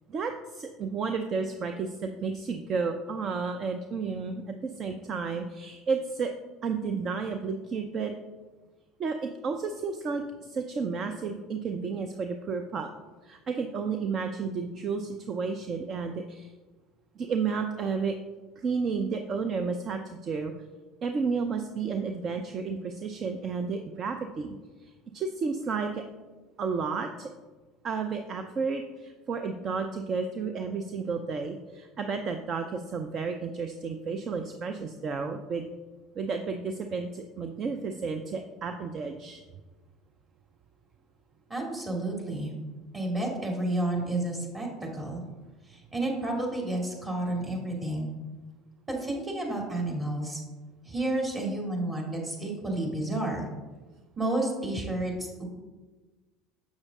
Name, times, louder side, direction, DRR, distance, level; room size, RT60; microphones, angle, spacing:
voice 1, 0.1-6.3 6.6-8.1 9.0-12.9 13.2-16.5 17.2-18.2 18.6-20.5 21.0-24.6 24.8-26.0 26.6-27.3 27.8-35.7 36.2-39.4, right 5 dB, 45° right, 6 dB, 0.6 m, -32 dB
voice 2, 41.5-42.5 42.9-45.2 45.7-48.1 48.9-50.4 50.8-53.4 54.2-55.4, right 1 dB, 20° right, -1 dB, 2.6 m, -31 dB
7.3 x 6.4 x 3.6 m, 1.2 s
hypercardioid pair, 70°, 0 cm